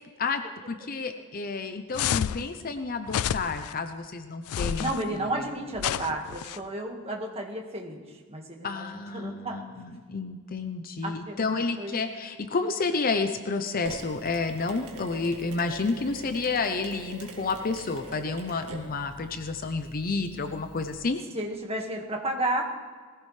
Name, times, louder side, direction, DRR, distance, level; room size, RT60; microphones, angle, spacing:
voice 1, 0.2-4.9 8.6-21.2, left 4 dB, 40° left, 8 dB, 0.6 m, -30 dB
sound 1, 1.9-2.4 3.1-3.7 4.5-5.0 5.8-6.6, left 10 dB, 80° left, 0.3 m, -29 dB
voice 2, 4.8-9.6 11.0-11.9 21.3-22.7, right 1 dB, 25° right, 1 dB, 1.7 m, -32 dB
Mechanisms, 13.8-21.0, right 3 dB, 85° right, 1.8 m, -44 dB
20.0 x 15.0 x 3.3 m, 1.5 s
head